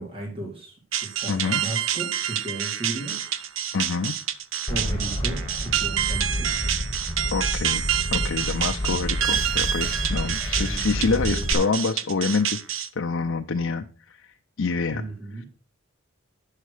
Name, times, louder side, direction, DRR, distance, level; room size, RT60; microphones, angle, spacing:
voice 1, 0.0-3.2 4.7-6.6 10.6-10.8 11.0-11.4 14.9-15.5, right 2 dB, 25° right, -1 dB, 2.6 m, -35 dB
sound 1, 0.9-12.9, right 10 dB, 70° right, 0.6 m, -28 dB
voice 2, 1.3-1.6 3.7-4.1 7.3-14.3 14.6-15.0 15.4-15.5, left 4 dB, 70° left, 3 dB, 0.6 m, -27 dB
sound 2, 4.7-11.5, equal, 15° left, 1.5 m, -29 dB
9.2 x 6.5 x 4.9 m, 0.37 s
head